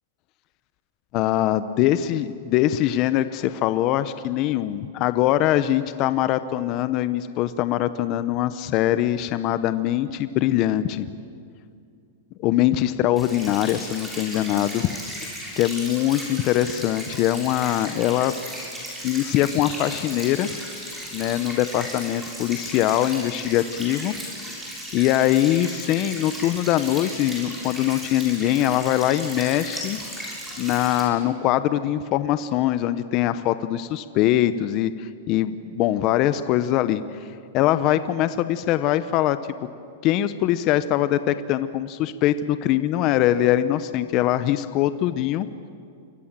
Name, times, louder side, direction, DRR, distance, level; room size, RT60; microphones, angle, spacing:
voice 1, 1.1-11.1 12.4-14.9 15.2-18.3 19.0-20.5 21.1-24.1 24.5-24.7 24.9-30.0 30.6-37.0 37.5-39.4 40.0-45.5, left 13 dB, 35° left, 13 dB, 0.9 m, -22 dB
sound 1, 13.2-31.0, equal, 5° right, 7.0 m, -36 dB
29.5 x 24.5 x 7.5 m, 2.4 s
supercardioid pair, 155°, 0 cm